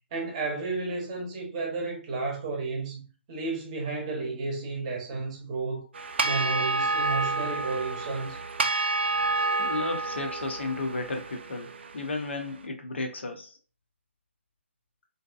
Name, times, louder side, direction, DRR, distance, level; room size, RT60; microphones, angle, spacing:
voice 1, 0.1-5.8 6.2-8.4, right 3 dB, 25° right, 0.8 m, -32 dB
sound 1, 5.9-12.3, right 3 dB, 55° right, 0.4 m, -29 dB
voice 2, 9.1-13.6, left 3 dB, 60° left, 0.6 m, -34 dB
2.6 x 2.2 x 2.4 m
figure-of-eight pair, 140°, 7 cm